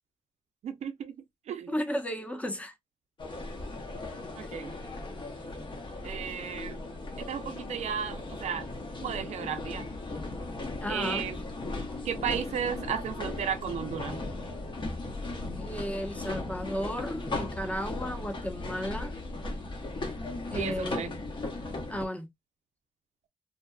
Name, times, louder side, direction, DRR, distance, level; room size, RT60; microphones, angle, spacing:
voice 1, 0.6-1.1 1.5-1.8 4.3-4.7 6.0-6.8 7.2-8.7 9.0-9.9 10.9-11.4 12.0-14.2 20.6-21.1, right 8 dB, 70° right, 0.4 m, -34 dB
voice 2, 1.7-2.7 10.8-11.3 15.6-19.1 20.5-21.0 21.9-22.3, equal, 10° left, 0.7 m, -34 dB
sound 1, 3.2-22.1, left 2 dB, 45° left, 0.8 m, -37 dB
2.7 x 2.2 x 2.2 m
cardioid pair, 75°, 12 cm